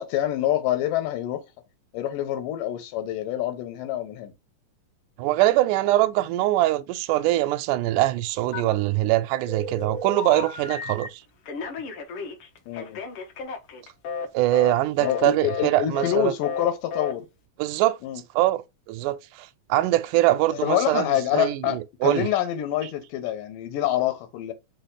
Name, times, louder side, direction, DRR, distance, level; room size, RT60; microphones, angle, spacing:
voice 1, 0.0-1.4 1.9-4.3 12.7-13.0 15.0-17.3 18.0-18.2 20.6-24.5, left 12 dB, 90° left, 2.5 m, -26 dB
voice 2, 5.2-11.2 14.3-16.3 17.6-18.0 18.4-18.6 18.9-22.3, right 16 dB, 80° right, 2.0 m, -23 dB
Telephone, 8.5-9.1 9.5-11.1 11.5-14.3 14.5-14.7 15.0-15.2 15.5-15.7 15.9-16.2 16.4-16.6 16.9-17.1, left 4 dB, 65° left, 1.4 m, -33 dB
5.6 x 2.3 x 3.8 m
omnidirectional pair, 3.7 m